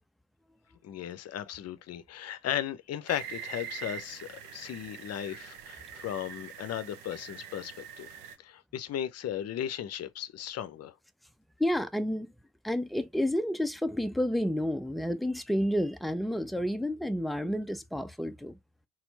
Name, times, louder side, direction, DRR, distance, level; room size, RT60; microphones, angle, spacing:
voice 1, 0.8-10.9, left 10 dB, 45° left, 0.6 m, -36 dB
sound 1, 3.1-8.4, right 8 dB, 70° right, 0.8 m, -44 dB
voice 2, 11.6-12.3 12.6-18.6, equal, ahead, 0.4 m, -30 dB
4.3 x 2.0 x 4.0 m
figure-of-eight pair, 45°, 37 cm